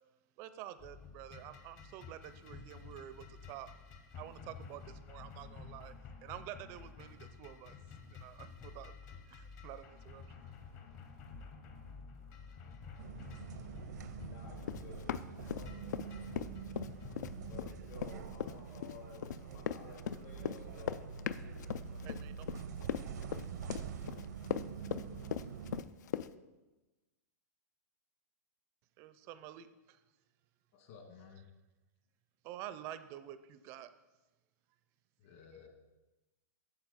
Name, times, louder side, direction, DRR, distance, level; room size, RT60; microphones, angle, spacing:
voice 1, 0.4-3.7 4.1-5.9 6.2-7.8 8.1-8.9 9.3-10.8 22.0-22.7 29.0-30.0 32.4-33.9, right 12 dB, 30° right, 13 dB, 0.4 m, -49 dB
sound 1, 0.8-18.0, left 5 dB, 30° left, 0.8 m, -51 dB
sound 2, 13.0-25.8, right 7 dB, 80° right, 0.6 m, -46 dB
voice 2, 14.2-16.6 17.5-21.0, left 4 dB, 70° left, -4 dB, 2.2 m, -55 dB
Run, 14.6-16.1 16.4-26.3, left 9 dB, 85° left, 0.4 m, -38 dB
voice 3, 30.7-31.5 35.2-35.7, left 6 dB, 50° left, 2 dB, 1.7 m, -55 dB
8.8 x 6.7 x 4.1 m, 1.1 s
supercardioid pair, 160°, 9 cm